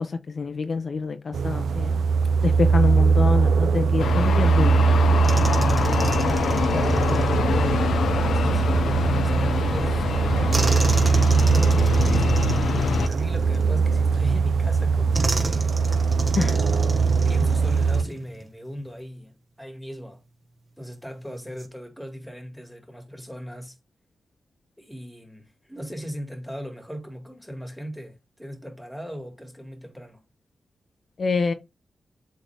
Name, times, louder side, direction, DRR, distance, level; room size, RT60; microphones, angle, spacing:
voice 1, 0.0-2.0 2.4-5.7 6.5-6.8 7.1-7.9 16.4-16.6 31.2-31.5, left 4 dB, 50° left, 0.7 m, -27 dB
sound 1, 1.3-18.0, right 5 dB, 80° right, 0.5 m, -21 dB
sound 2, 4.0-13.1, left 6 dB, 85° left, 0.8 m, -26 dB
sound 3, 5.2-7.9 10.5-14.0 15.1-18.5 18.8-19.0 21.3-21.7, right 2 dB, 25° right, 1.5 m, -32 dB
voice 2, 6.7-7.1 8.3-8.9 9.2-12.4 13.1-15.8 17.2-20.2 20.8-23.8 24.8-30.2, equal, ahead, 2.0 m, -38 dB
7.9 x 3.8 x 3.4 m
cardioid pair, 95°, 0 cm